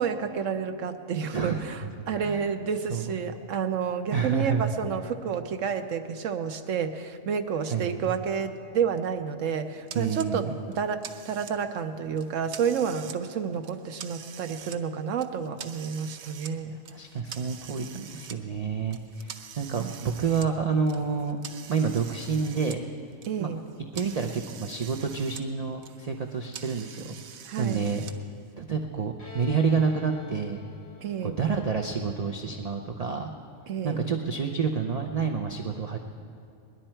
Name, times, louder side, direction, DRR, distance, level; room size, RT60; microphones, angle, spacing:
voice 1, 0.0-16.7 19.7-19.9 23.3-23.7 27.5-27.9 31.0-31.4 33.7-34.0, right 7 dB, 70° right, 8 dB, 1.1 m, -30 dB
voice 2, 4.1-4.7 7.7-8.1 9.9-10.5 16.7-21.4 21.7-22.9 23.4-23.5 23.9-27.1 27.6-28.0 28.6-30.6 31.2-33.3 33.8-36.0, right 5 dB, 45° right, 3 dB, 0.5 m, -29 dB
sound 1, 9.9-10.3 10.7-11.8 12.2-13.2 13.5-14.8 15.2-16.5 16.9-18.4 18.9-22.8 23.1-25.4 25.7-28.1, right 8 dB, 90° right, 1.2 m, -44 dB
Bowed string instrument, 29.2-32.7, left 5 dB, 50° left, 2.2 m, -46 dB
20.5 x 11.0 x 4.4 m, 2.5 s
omnidirectional pair, 1.4 m